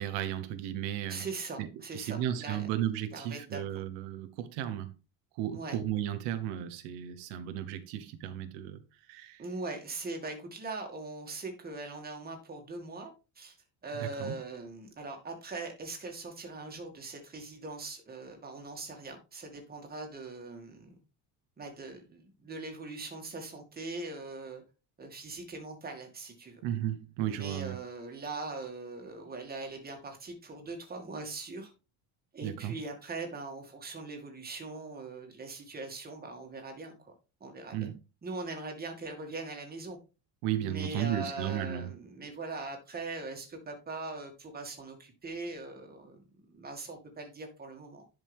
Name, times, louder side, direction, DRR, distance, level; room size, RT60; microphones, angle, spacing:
voice 1, 0.0-1.3 1.6-1.7 1.9-4.9 5.3-8.8 9.1-9.4 14.0-14.3 26.6-27.8 32.4-32.7 37.7-38.0 40.4-41.9, right 11 dB, 90° right, 1.2 m, -34 dB
voice 2, 1.1-2.7 3.1-3.8 5.5-5.8 9.4-13.6 13.8-20.9 21.6-24.6 25.0-26.6 27.3-31.7 32.3-37.1 37.4-37.9 38.2-40.0 40.6-48.1, right 3 dB, 20° right, 2.3 m, -41 dB
10.5 x 5.3 x 3.6 m
cardioid pair, 145°, 41 cm